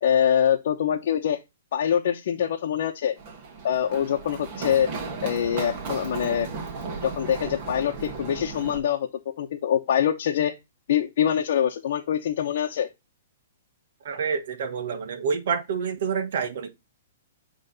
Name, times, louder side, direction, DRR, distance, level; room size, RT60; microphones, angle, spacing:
voice 1, 0.0-1.4 1.7-3.2 3.6-4.9 5.2-6.5 7.0-9.1 9.4-10.6 10.9-12.9, left 9 dB, 60° left, 0.9 m, -24 dB
Run, 3.2-8.8, right 4 dB, 40° right, 2.0 m, -35 dB
voice 2, 14.0-16.7, right 6 dB, 60° right, 1.5 m, -28 dB
8.4 x 3.3 x 4.1 m
hypercardioid pair, 150°, 0 cm